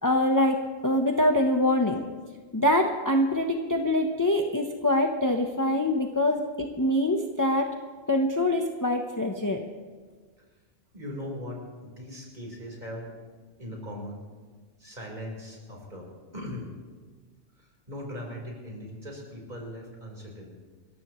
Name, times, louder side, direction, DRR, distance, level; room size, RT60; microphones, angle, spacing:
voice 1, 0.0-0.6 0.8-2.1 2.5-7.7 8.1-9.6, left 1 dB, 15° left, 2 dB, 0.9 m, -24 dB
voice 2, 10.9-13.3 13.6-14.2 14.8-16.7 17.6-20.5, left 1 dB, 40° right, -2 dB, 4.5 m, -39 dB
28.5 x 14.5 x 3.2 m, 1.5 s
omnidirectional pair, 1.2 m